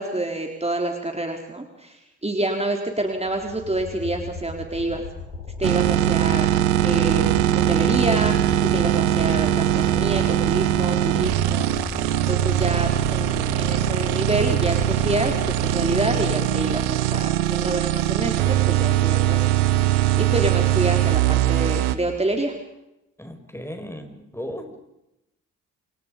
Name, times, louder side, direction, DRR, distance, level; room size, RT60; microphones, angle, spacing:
voice 1, 0.0-5.0 5.6-7.2 7.5-8.4 8.7-11.7 12.3-19.4 20.2-22.5, right 2 dB, 15° right, 2 dB, 4.2 m, -27 dB
sound 1, 3.1-16.8, left 4 dB, 90° left, 7.6 m, -35 dB
sound 2, 5.6-22.0, right 13 dB, 80° right, 1.3 m, -21 dB
voice 2, 23.2-24.7, equal, 5° left, 6 dB, 5.8 m, -35 dB
28.5 x 28.0 x 5.4 m, 0.90 s
hypercardioid pair, 45°, 42 cm